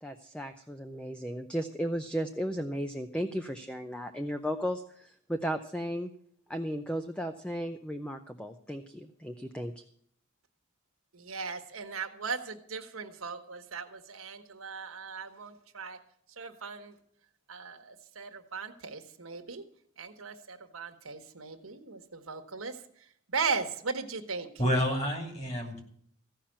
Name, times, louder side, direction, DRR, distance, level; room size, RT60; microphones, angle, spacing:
voice 1, 0.0-6.1 6.5-9.7, equal, 5° left, 7 dB, 0.5 m, -35 dB
voice 2, 11.1-16.0 16.4-16.9 17.5-19.6 20.0-24.5, right 5 dB, 85° right, 6 dB, 1.3 m, -38 dB
voice 3, 24.6-25.8, equal, 30° left, 3 dB, 2.7 m, -29 dB
15.5 x 5.8 x 8.7 m, 0.65 s
head